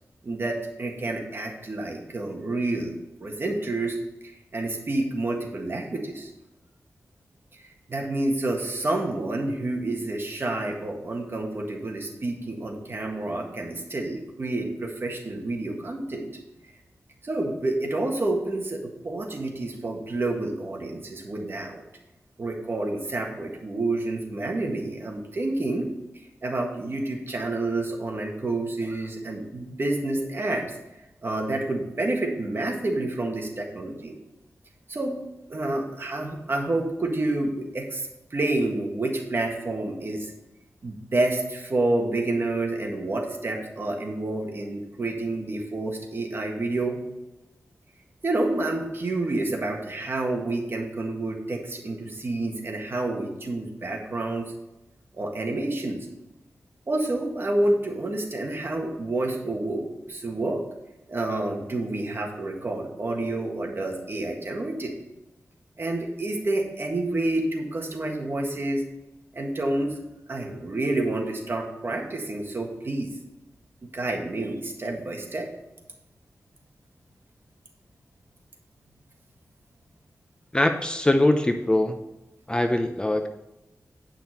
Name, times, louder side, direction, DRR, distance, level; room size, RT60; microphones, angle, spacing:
voice 1, 0.2-2.9 3.2-4.0 4.2-6.3 7.5-16.3 17.2-21.8 22.4-25.9 26.4-30.7 31.2-34.2 34.9-35.2 35.5-40.3 40.8-47.0 48.2-54.4 55.1-56.0 56.9-60.6 61.1-64.9 65.8-68.8 69.3-70.0 70.3-73.1 73.9-75.5, right 2 dB, 45° right, 1 dB, 1.6 m, -29 dB
voice 2, 80.5-82.0 82.5-83.3, left 1 dB, 15° left, 6 dB, 0.6 m, -22 dB
9.1 x 5.8 x 4.2 m, 0.97 s
wide cardioid pair, 105°, 6 cm